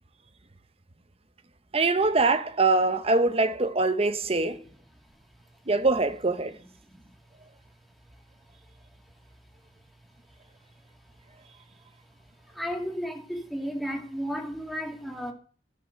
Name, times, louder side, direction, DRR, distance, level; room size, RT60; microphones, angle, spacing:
voice 1, 1.7-4.6 5.7-6.5, right 3 dB, 35° right, 0.9 m, -23 dB
voice 2, 12.6-15.3, equal, ahead, 2.2 m, -33 dB
16.0 x 5.7 x 6.5 m
head